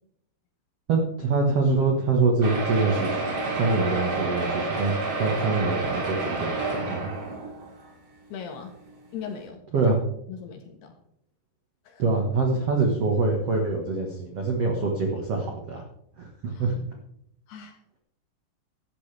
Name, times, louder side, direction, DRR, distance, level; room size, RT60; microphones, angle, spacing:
voice 1, 0.9-3.2 3.5-7.1 9.7-10.0 12.0-15.8 16.2-16.7, right 3 dB, 90° right, 1 dB, 1.3 m, -25 dB
sound 1, 2.4-7.9 8.5-8.6 8.9-9.0 9.3-9.4, right 3 dB, 35° right, 3.6 m, -29 dB
voice 2, 8.3-8.8 9.1-10.0 10.3-10.9 11.8-12.0 16.5-16.8 17.5-17.8, left 6 dB, 70° left, 4 dB, 3.2 m, -39 dB
16.0 x 13.0 x 3.4 m, 0.73 s
omnidirectional pair, 5.4 m